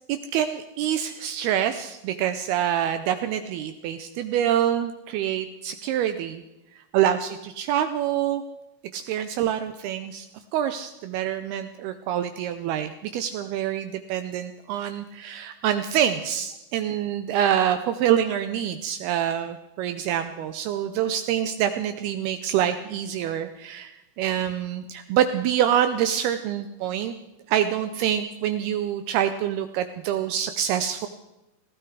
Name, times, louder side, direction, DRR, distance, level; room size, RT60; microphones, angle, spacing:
voice 1, 0.1-6.4 6.9-8.4 8.9-10.3 10.5-23.9 24.2-27.1 27.5-31.1, right 10 dB, 85° right, 9 dB, 2.2 m, -26 dB
18.5 x 15.5 x 4.7 m, 0.95 s
omnidirectional pair, 5.2 m